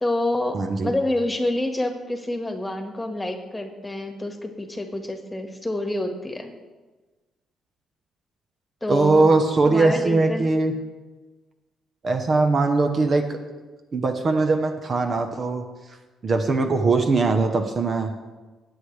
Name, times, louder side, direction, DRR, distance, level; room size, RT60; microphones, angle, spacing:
voice 1, 0.0-0.6 0.8-6.5 8.8-9.3 9.6-10.5, left 1 dB, 10° left, 4 dB, 1.6 m, -27 dB
voice 2, 0.5-0.9 8.9-10.7 12.0-13.4 13.9-15.6 16.2-18.1, right 3 dB, 45° right, 6 dB, 0.9 m, -21 dB
18.5 x 8.0 x 3.3 m, 1.3 s
cardioid pair, 90°, 0 cm